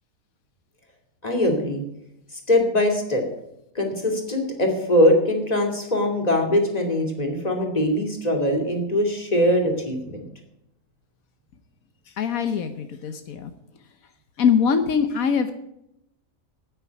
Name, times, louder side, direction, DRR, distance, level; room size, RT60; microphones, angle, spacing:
voice 1, 1.2-1.8 2.5-3.2 3.7-10.2, left 1 dB, 30° left, 2 dB, 2.8 m, -22 dB
voice 2, 12.2-13.5 14.4-15.5, left 6 dB, 85° left, 9 dB, 1.4 m, -22 dB
9.7 x 9.4 x 9.3 m, 0.82 s
omnidirectional pair, 1.4 m